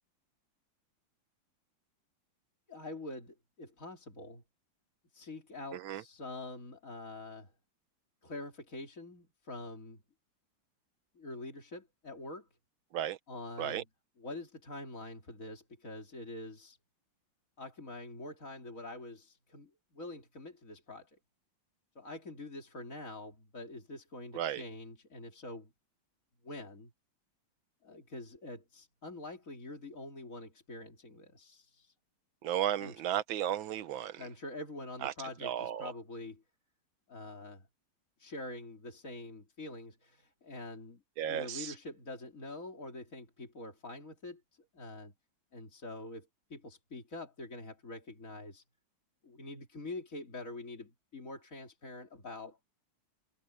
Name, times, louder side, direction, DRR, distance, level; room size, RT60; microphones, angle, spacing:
voice 1, 2.7-4.4 5.1-7.5 8.2-10.0 11.1-12.5 13.3-13.8 14.2-16.8 17.6-21.2 21.9-25.7 26.4-26.9 27.8-31.9 32.8-32.9 34.2-36.4 37.1-37.7 38.2-41.0 41.3-45.1 45.5-48.6 49.2-52.6, left 2 dB, 40° left, 3.4 m, -45 dB
voice 2, 5.7-6.0 12.9-13.2 13.6-13.8 24.3-24.6 32.4-34.2 35.0-35.1 35.4-35.9 41.2-41.7, right 11 dB, 80° right, 1.7 m, -34 dB
omnidirectional pair, 2.1 m